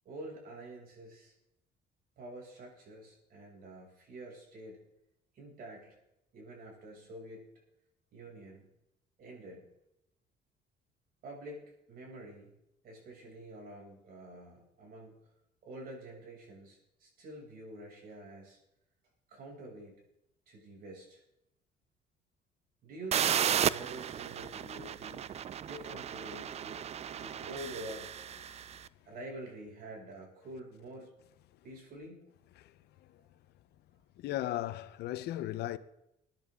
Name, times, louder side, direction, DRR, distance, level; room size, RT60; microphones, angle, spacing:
voice 1, 0.1-1.3 2.2-4.8 5.3-6.0 6.3-7.5 8.1-8.7 9.2-9.7 11.2-12.5 12.8-15.1 15.6-18.6 19.3-20.0 20.5-21.2 22.8-26.9 27.2-28.1 29.1-31.1 31.6-32.3, right 1 dB, 60° right, 7.0 m, -47 dB
sound 1, 23.1-28.8, right 9 dB, 40° right, 0.5 m, -34 dB
voice 2, 32.6-33.2 34.2-35.8, left 14 dB, 75° left, 0.9 m, -37 dB
22.0 x 10.5 x 3.8 m
cardioid pair, 110°, 17 cm